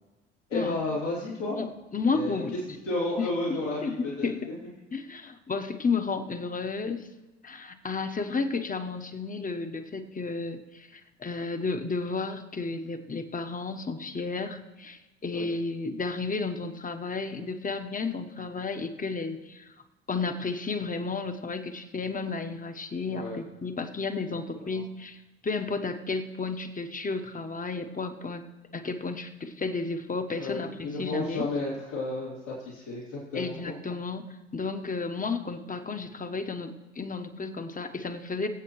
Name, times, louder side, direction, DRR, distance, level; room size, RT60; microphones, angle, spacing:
voice 1, 0.5-1.6 2.1-2.6 2.8-4.7 15.3-15.5 23.1-23.4 24.7-24.8 30.3-33.7, left 2 dB, 85° left, -7 dB, 3.6 m, -32 dB
voice 2, 1.6-2.8 3.2-4.0 4.2-4.5 4.9-7.1 7.4-19.7 20.1-28.4 28.7-31.5 33.3-34.3 34.5-38.5, left 4 dB, 20° left, 7 dB, 1.2 m, -32 dB
23.5 x 8.2 x 3.2 m, 1.1 s
figure-of-eight pair, 55°, 36 cm